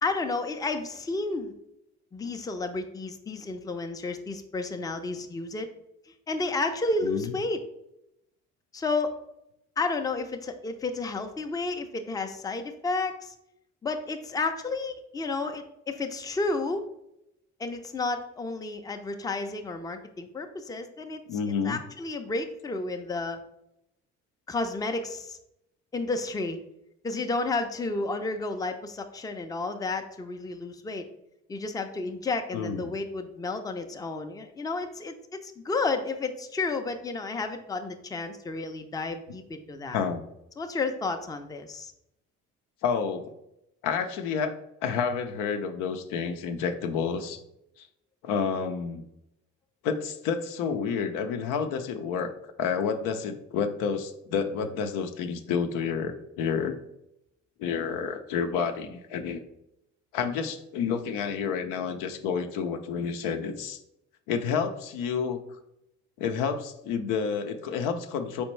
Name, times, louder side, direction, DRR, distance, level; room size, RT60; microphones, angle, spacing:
voice 1, 0.0-1.5 2.1-5.7 6.3-7.6 8.7-9.2 9.8-13.3 13.8-16.9 17.6-21.2 21.6-23.4 24.5-25.4 25.9-26.6 27.0-31.1 31.5-35.1 35.4-40.0 40.6-41.9, left 3 dB, 10° left, 6 dB, 0.4 m, -31 dB
voice 2, 7.0-7.3 21.3-21.8 32.5-32.9 39.9-40.2 42.8-43.2 43.8-47.4 47.8-47.9 48.2-49.0 49.8-52.3 52.6-56.8 57.6-59.4 60.1-63.8 64.3-65.4 66.2-68.4, left 6 dB, 80° left, 7 dB, 0.5 m, -29 dB
4.3 x 3.5 x 3.1 m, 0.82 s
supercardioid pair, 65°, 32 cm